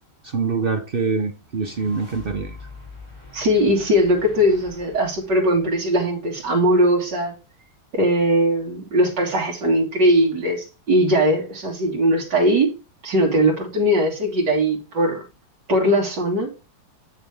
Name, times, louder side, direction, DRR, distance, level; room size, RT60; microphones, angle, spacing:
voice 1, 0.2-2.6, right 4 dB, 65° right, 0.5 m, -24 dB
sound 1, 1.4-6.7, left 3 dB, 15° left, 3.8 m, -44 dB
voice 2, 3.3-7.3 7.9-12.7 13.0-15.2 15.7-16.5, equal, 85° right, 2.6 m, -20 dB
7.9 x 6.5 x 3.4 m
omnidirectional pair, 1.8 m